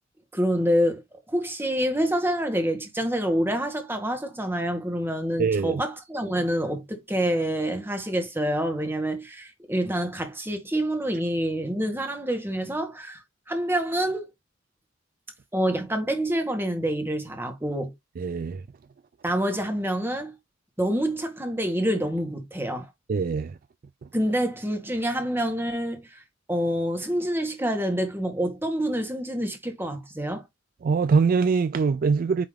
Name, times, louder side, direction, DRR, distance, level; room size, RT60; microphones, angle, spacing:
voice 1, 0.3-1.0 1.3-14.3 15.5-17.9 19.2-20.3 20.8-22.9 24.1-26.2 26.5-30.4, equal, 10° right, 1.8 m, -27 dB
voice 2, 5.4-5.8 18.2-18.6 23.1-23.5 30.8-32.5, right 5 dB, 45° right, 0.3 m, -23 dB
9.0 x 3.4 x 3.4 m
head